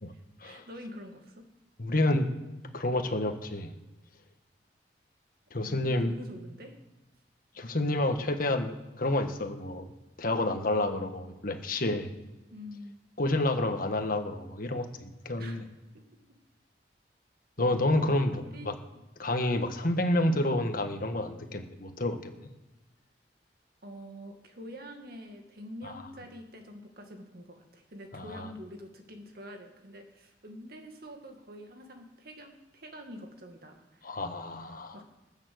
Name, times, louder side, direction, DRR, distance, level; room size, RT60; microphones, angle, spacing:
voice 1, 0.1-1.4 5.5-6.8 12.5-13.0 15.4-15.6 15.9-16.0 17.6-19.0 20.2-20.5 23.8-34.2 34.9-35.0, equal, 60° right, 4 dB, 2.2 m, -46 dB
voice 2, 1.8-2.3 2.7-3.7 5.5-6.2 7.5-9.9 10.2-12.1 13.2-15.6 17.6-18.7 19.2-22.3 25.8-25.9 28.1-28.5 34.0-35.0, left 1 dB, 55° left, 6 dB, 1.5 m, -29 dB
20.0 x 7.3 x 7.9 m, 1.1 s
head